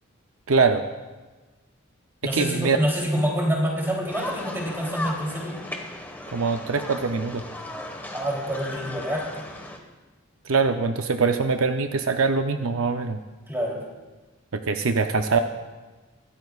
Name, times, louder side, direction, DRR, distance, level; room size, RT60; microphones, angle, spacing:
voice 1, 0.5-0.8 2.3-2.8 3.1-3.2 6.3-7.4 10.5-13.2 14.5-15.4, right 4 dB, 65° right, 7 dB, 0.6 m, -23 dB
voice 2, 2.2-5.5 8.1-9.3 13.5-13.8, equal, 10° right, -2 dB, 3.1 m, -26 dB
sound 1, 4.1-9.8, left 1 dB, 10° left, 1.3 m, -36 dB
24.0 x 13.0 x 2.4 m, 1.2 s
head